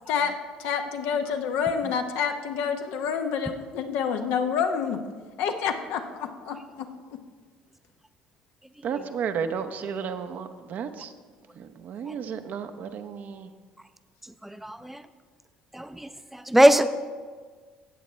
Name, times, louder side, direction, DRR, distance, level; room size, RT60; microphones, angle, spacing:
voice 1, 0.1-5.0 5.4-6.9, left 6 dB, 70° left, 6 dB, 0.8 m, -28 dB
voice 2, 8.8-11.1 11.6-13.5, right 6 dB, 55° right, 9 dB, 0.7 m, -33 dB
voice 3, 14.4-15.0 15.7-16.9, right 1 dB, 5° right, 11 dB, 0.6 m, -22 dB
14.0 x 8.2 x 3.2 m, 1.5 s
hypercardioid pair, 60°, 4 cm